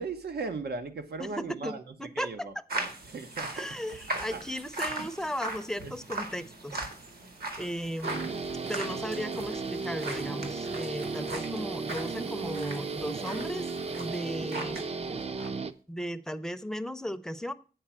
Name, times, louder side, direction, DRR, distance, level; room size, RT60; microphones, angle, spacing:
voice 1, 0.0-3.5 4.1-4.4 5.8-5.9, right 4 dB, 90° right, 7 dB, 1.2 m, -38 dB
voice 2, 1.2-2.6 3.5-6.8 7.6-8.3 8.7-13.7 14.0-14.9 15.9-17.5, equal, 5° left, 11 dB, 0.6 m, -36 dB
sound 1, 2.7-14.9 15.2-15.5, right 2 dB, 70° right, 2.2 m, -39 dB
Guitar, 8.0-15.7, right 4 dB, 40° right, 0.6 m, -35 dB
8.6 x 4.7 x 7.4 m, 0.38 s
wide cardioid pair, 105°, 16 cm